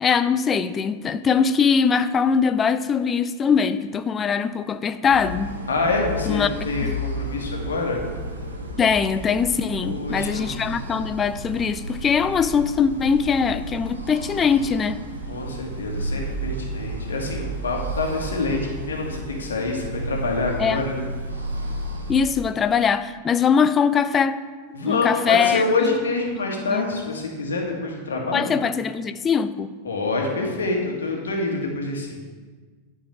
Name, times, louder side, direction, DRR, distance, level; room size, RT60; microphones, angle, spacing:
voice 1, 0.0-5.5 6.3-6.9 8.8-15.0 20.6-20.8 22.1-24.4 24.8-25.9 26.6-26.8 28.3-29.7, left 6 dB, 20° left, 13 dB, 0.4 m, -22 dB
sound 1, 5.1-22.3, right 1 dB, 75° right, 1.3 m, -32 dB
voice 2, 5.7-8.0 9.8-10.5 15.3-21.0 24.7-28.5 29.9-32.2, left 3 dB, 70° left, 0 dB, 1.7 m, -26 dB
10.5 x 4.7 x 5.7 m, 1.4 s
figure-of-eight pair, 90°, 0 cm